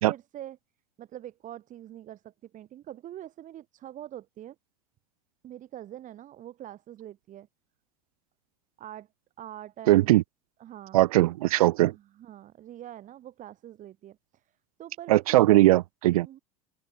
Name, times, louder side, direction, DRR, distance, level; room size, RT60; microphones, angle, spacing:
voice 1, 0.0-0.6 1.0-4.6 5.4-7.5 8.8-9.1 9.4-10.1 10.6-11.1 11.8-14.4 14.8-15.5 16.2-16.4, right 12 dB, 40° right, 6.2 m, -44 dB
voice 2, 9.9-10.2 10.9-11.9 15.1-16.3, right 17 dB, 70° right, 0.8 m, -20 dB
open air
hypercardioid pair, 80°, 19 cm